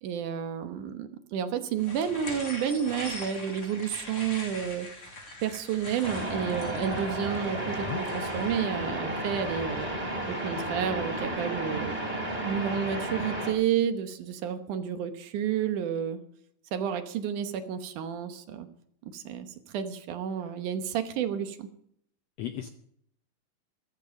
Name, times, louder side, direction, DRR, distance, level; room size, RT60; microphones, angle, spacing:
voice 1, 0.0-4.9 5.4-9.9 10.3-12.0 12.4-16.2 16.7-18.7 19.0-19.5 19.7-21.7, right 8 dB, 70° right, 8 dB, 2.5 m, -31 dB
sound 1, 1.8-8.6, left 2 dB, 40° left, 6.5 m, -42 dB
sound 2, 6.0-13.5, right 1 dB, 10° right, 3.0 m, -33 dB
voice 2, 7.7-8.0 22.4-22.7, left 11 dB, 75° left, 7 dB, 1.5 m, -35 dB
14.5 x 14.0 x 5.3 m, 0.68 s
omnidirectional pair, 3.8 m